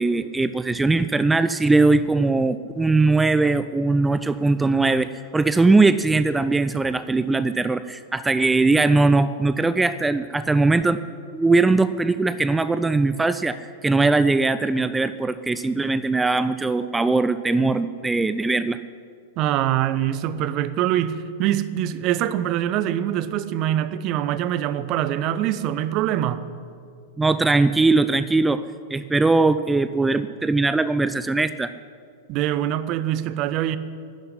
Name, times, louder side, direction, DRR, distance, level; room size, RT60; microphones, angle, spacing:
voice 1, 0.0-11.0 11.3-18.8 27.2-28.6 28.9-31.7, right 3 dB, 10° right, 0.4 m, -20 dB
voice 2, 19.4-26.4 32.3-33.8, right 12 dB, 40° right, 0.8 m, -24 dB
11.5 x 10.5 x 10.0 m
figure-of-eight pair, 95°, 0 cm